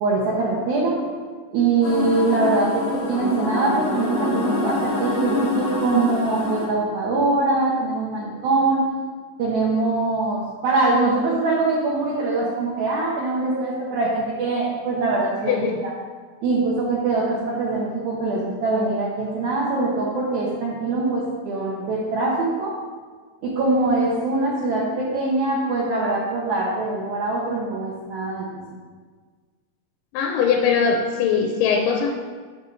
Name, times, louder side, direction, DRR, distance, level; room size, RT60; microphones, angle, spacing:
voice 1, 0.0-1.0 1.5-8.9 9.4-15.7 16.4-22.7 23.4-28.5, right 3 dB, 70° right, -5 dB, 2.0 m, -23 dB
sound 1, 1.8-6.7, left 3 dB, 55° left, 2.4 m, -26 dB
voice 2, 15.5-15.8 30.1-32.2, left 6 dB, 85° left, 2 dB, 2.2 m, -21 dB
6.7 x 6.1 x 3.1 m, 1.5 s
omnidirectional pair, 3.8 m